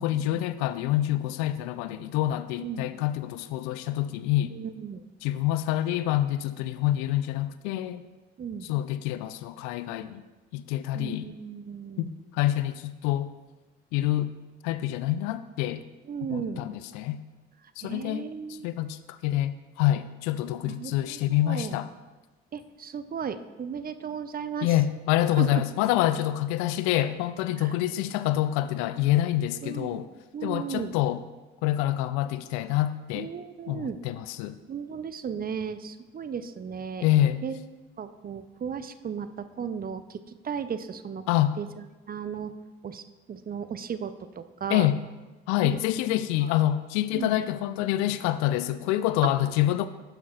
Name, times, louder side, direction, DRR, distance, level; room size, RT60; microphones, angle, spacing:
voice 1, 0.0-4.5 5.2-8.1 8.6-10.2 10.5-11.3 12.0-13.3 13.9-14.3 14.6-15.9 16.3-17.2 17.8-21.9 24.6-30.1 30.4-31.2 31.6-33.3 33.7-34.6 37.0-37.4 41.3-41.6 44.7-45.0 45.5-49.9, left 13 dB, 65° left, 13 dB, 0.4 m, -27 dB
voice 2, 4.5-5.0 8.4-8.7 10.9-12.2 16.1-16.6 17.8-18.7 20.7-21.8 22.5-24.7 25.4-25.6 27.6-27.7 29.6-30.0 30.3-31.0 33.2-34.0 34.7-37.0 37.4-37.6 38.0-41.2 41.6-41.7 42.1-42.5 42.8-43.0 43.3-44.9 45.6-45.8 47.1-47.3, right 7 dB, 30° right, 12 dB, 0.5 m, -35 dB
11.5 x 5.8 x 2.4 m, 1.2 s
hypercardioid pair, 50°, 30 cm